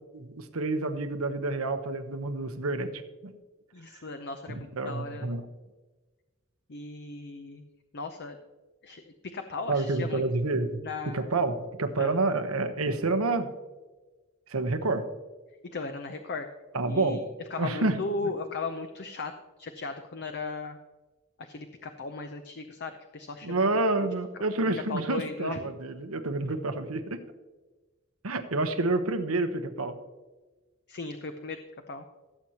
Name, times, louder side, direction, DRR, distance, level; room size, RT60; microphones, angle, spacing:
voice 1, 0.1-2.9 3.2-3.3 4.5-5.4 9.7-10.8 11.1-13.5 14.5-15.0 16.7-17.2 17.6-17.9 23.4-27.2 28.2-30.0, right 2 dB, 85° right, 8 dB, 1.0 m, -28 dB
voice 2, 3.7-5.3 6.7-7.7 7.9-8.4 8.8-10.2 10.8-11.3 12.0-12.1 15.7-16.5 16.8-19.3 19.6-20.8 21.4-23.8 24.9-25.7 30.9-31.6 31.9-32.1, left 3 dB, 55° left, 7 dB, 0.7 m, -37 dB
17.0 x 7.8 x 2.9 m, 1.2 s
head